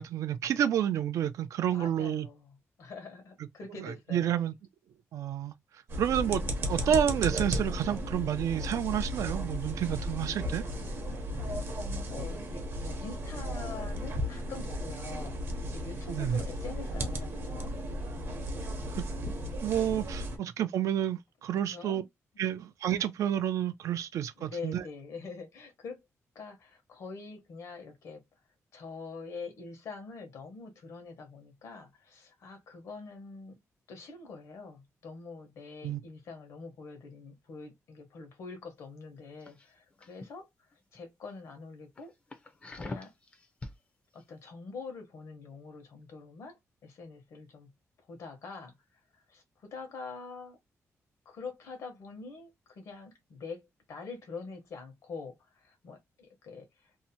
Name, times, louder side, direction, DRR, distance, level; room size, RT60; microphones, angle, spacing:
voice 1, 0.0-2.3 3.8-4.5 5.1-5.5 6.0-6.4 6.7-10.6 16.1-16.4 19.6-22.0 22.4-24.8 35.8-36.0, right 10 dB, 80° right, 0.4 m, -30 dB
voice 2, 1.7-4.4 9.7-9.8 10.6-11.8 12.1-17.7 18.5-18.7 21.5-22.1 24.4-26.0 26.3-28.2 28.7-33.6 33.9-42.1 42.7-43.1 44.1-47.7 48.1-48.8 49.1-50.6 51.2-57.0, left 4 dB, 70° left, 1.0 m, -45 dB
sound 1, 5.9-20.4, equal, 45° right, 0.7 m, -35 dB
sound 2, 39.4-40.3 40.7-41.0 41.4-41.5 42.0-43.8 44.2-44.3, left 2 dB, 25° left, 0.5 m, -43 dB
2.7 x 2.1 x 2.7 m
wide cardioid pair, 160°, 5 cm